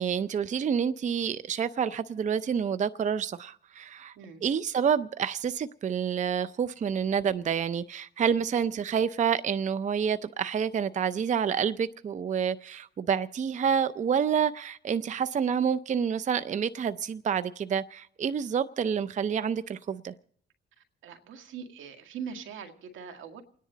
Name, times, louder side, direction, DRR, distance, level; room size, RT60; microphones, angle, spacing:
voice 1, 0.0-4.1 4.4-20.1, right 7 dB, 40° right, 0.5 m, -28 dB
voice 2, 21.0-23.4, right 7 dB, 80° right, 1.9 m, -41 dB
29.0 x 10.5 x 3.9 m
cardioid pair, 90°, 20 cm